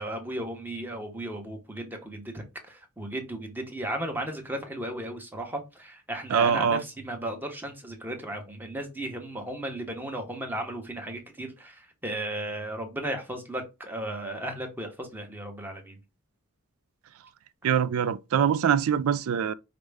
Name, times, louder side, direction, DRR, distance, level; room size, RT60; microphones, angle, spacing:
voice 1, 0.0-16.0, right 1 dB, 10° right, 0.8 m, -35 dB
voice 2, 6.3-6.8 17.6-19.5, right 7 dB, 65° right, 0.3 m, -23 dB
5.0 x 2.1 x 3.3 m
head